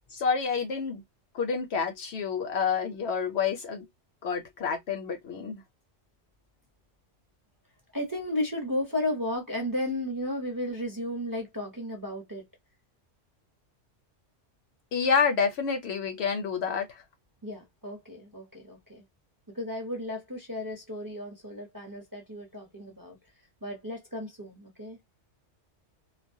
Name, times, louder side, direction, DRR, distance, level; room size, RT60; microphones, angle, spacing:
voice 1, 0.1-1.0 1.3-3.9 4.2-5.6 14.9-17.0, left 6 dB, 65° left, 0.8 m, -28 dB
voice 2, 7.9-12.4 17.4-19.0 19.5-23.2 23.6-25.0, left 1 dB, 20° right, 0.6 m, -34 dB
2.2 x 2.1 x 2.6 m
omnidirectional pair, 1.2 m